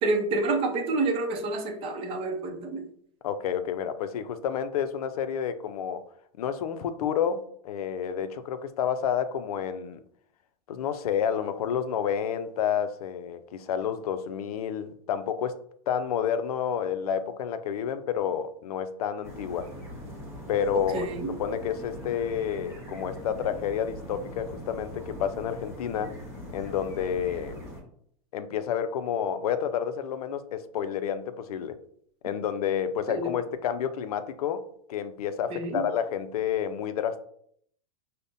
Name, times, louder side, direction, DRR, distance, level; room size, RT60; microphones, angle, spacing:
voice 1, 0.0-2.8 20.7-21.3 33.1-33.3 35.5-35.8, right 2 dB, 30° right, 4 dB, 0.6 m, -28 dB
voice 2, 3.2-6.0 6.4-10.0 10.7-15.6 15.9-19.7 20.5-21.1 21.4-26.1 26.5-27.6 28.3-31.8 32.2-37.2, left 8 dB, 85° left, 10 dB, 0.4 m, -30 dB
sound 1, 19.2-27.8, equal, 15° right, 1.0 m, -41 dB
5.3 x 2.1 x 2.6 m, 0.65 s
supercardioid pair, 140°, 19 cm